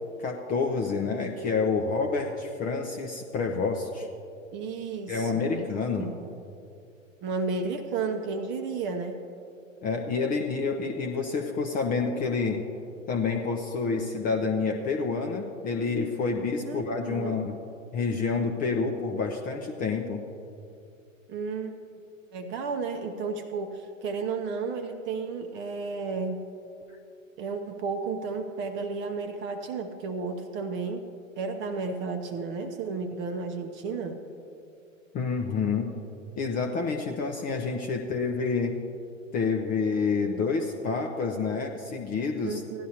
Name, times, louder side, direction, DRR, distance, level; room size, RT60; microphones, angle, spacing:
voice 1, 0.2-4.1 5.1-6.1 9.8-12.7 13.1-17.6 17.9-20.2 35.1-35.9 36.4-38.7 39.3-42.6, left 4 dB, 20° left, 2 dB, 0.6 m, -28 dB
voice 2, 4.5-5.7 6.0-6.3 7.2-9.2 16.7-17.4 21.3-21.8 22.3-26.4 27.4-31.0 31.4-34.2 42.4-42.9, right 4 dB, 30° right, 6 dB, 0.7 m, -33 dB
16.5 x 11.0 x 2.8 m, 2.6 s
figure-of-eight pair, 105°, 40 cm